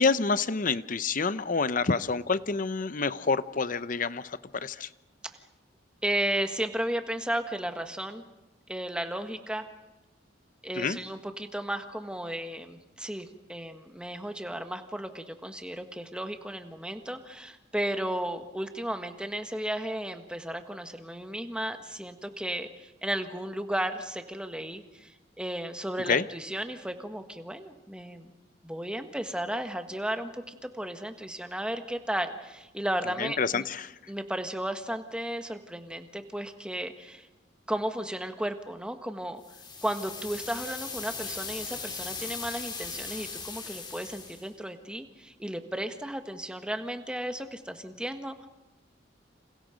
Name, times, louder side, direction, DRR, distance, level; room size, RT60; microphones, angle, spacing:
voice 1, 0.0-4.9 10.8-11.0 26.1-26.2 33.2-33.9, left 4 dB, 45° left, 15 dB, 0.8 m, -28 dB
voice 2, 6.0-8.2 8.7-9.7 10.6-28.3 28.6-33.6 34.1-37.3 37.7-39.4 39.8-48.5, right 1 dB, 5° right, 7 dB, 1.6 m, -34 dB
sound 1, 39.4-44.5, left 5 dB, 25° left, 3.4 m, -39 dB
29.5 x 27.5 x 5.2 m, 1.0 s
head